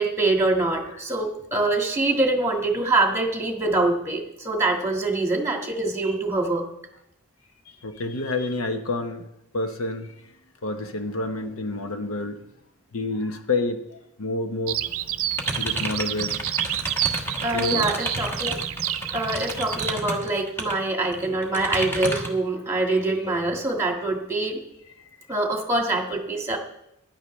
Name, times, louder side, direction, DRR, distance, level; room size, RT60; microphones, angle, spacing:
voice 1, 0.0-6.7 17.4-18.6 19.1-24.6 25.3-26.6, right 2 dB, 10° right, 2 dB, 1.8 m, -24 dB
voice 2, 7.8-9.3 9.5-10.1 10.6-12.4 12.9-14.8 15.6-16.3 17.5-17.9, left 2 dB, 75° left, 6 dB, 1.1 m, -28 dB
Bird vocalization bird call bird song, 14.7-19.9, right 12 dB, 75° right, 0.6 m, -29 dB
sound 1, 15.3-20.7 21.1-22.4, right 1 dB, 10° left, 1.4 m, -31 dB
15.5 x 10.5 x 3.3 m, 0.83 s
head